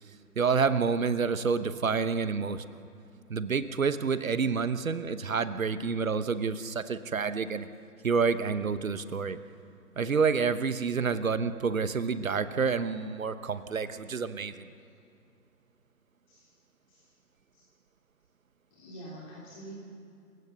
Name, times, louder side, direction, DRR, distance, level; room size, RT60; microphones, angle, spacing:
voice 1, 0.4-2.8 3.3-7.7 8.0-9.4 10.0-14.7, right 5 dB, 55° right, 12 dB, 1.1 m, -28 dB
voice 2, 18.7-19.8, right 1 dB, 20° left, -5 dB, 3.4 m, -46 dB
28.0 x 16.5 x 6.6 m, 2.6 s
figure-of-eight pair, 150°, 48 cm